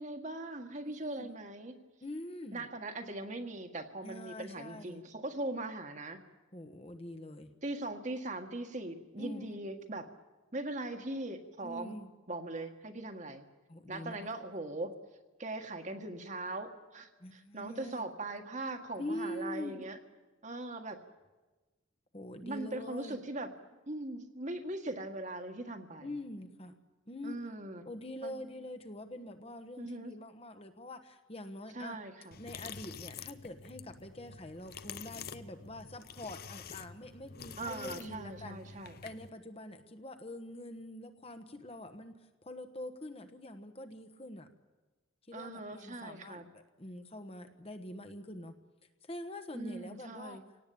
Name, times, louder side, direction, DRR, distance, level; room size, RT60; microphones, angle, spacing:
voice 1, 0.0-1.7 2.5-6.2 7.6-10.1 10.5-12.0 12.3-13.4 13.9-14.9 15.4-20.0 20.4-21.0 22.4-23.5 23.9-26.1 27.2-27.8 28.2-28.4 29.8-30.1 31.7-32.4 37.6-39.0 45.3-46.5 49.5-50.4, right 2 dB, 35° right, 5 dB, 1.7 m, -40 dB
voice 2, 0.8-1.3 2.0-2.6 4.0-5.0 6.5-7.5 9.2-9.6 11.6-12.1 13.7-14.3 17.2-18.0 19.0-19.8 22.1-23.2 26.0-26.7 27.1-27.4 27.8-32.0 32.4-38.6 39.0-42.2 42.4-44.5 45.3-48.6 49.0-50.4, left 1 dB, 30° left, 7 dB, 1.3 m, -44 dB
sound 1, 32.3-39.3, left 6 dB, 50° left, 0.8 m, -48 dB
26.5 x 18.0 x 8.7 m, 1.2 s
head